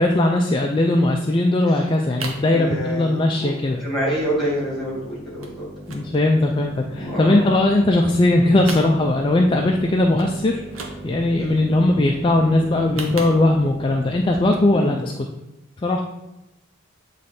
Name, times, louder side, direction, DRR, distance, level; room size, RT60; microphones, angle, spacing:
voice 1, 0.0-3.8 5.9-10.6 11.0-15.3 15.8-16.0, left 2 dB, 25° left, 1 dB, 0.3 m, -19 dB
sound 1, 1.9-2.5 2.9-3.3 3.6-3.7 3.9-4.1 4.4-4.9 5.4-5.6 5.8-7.1 7.5-8.3 8.5-9.4 9.7-9.8 10.1-10.3 10.6-11.4 12.7-13.8 14.4-14.7 15.1-15.2, right 4 dB, 80° right, 0.9 m, -36 dB
voice 2, 2.4-3.5 3.8-5.6 7.0-7.4 11.4-11.5 14.7-14.9, equal, ahead, -6 dB, 2.1 m, -27 dB
sound 2, 3.8-14.9, right 1 dB, 20° right, 0.9 m, -40 dB
7.8 x 3.2 x 4.2 m, 0.93 s
head